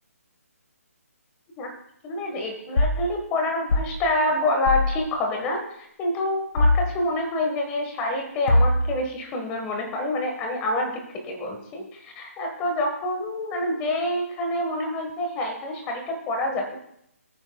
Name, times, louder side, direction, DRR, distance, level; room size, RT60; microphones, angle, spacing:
voice 1, 2.0-16.8, left 1 dB, 15° left, 3 dB, 1.5 m, -27 dB
sound 1, 2.8-3.0 3.7-4.0 4.7-4.9 6.6-6.9 8.5-9.0, left 2 dB, 60° left, 3.1 m, -20 dB
21.5 x 9.6 x 2.4 m, 0.74 s
hypercardioid pair, 165°, 8 cm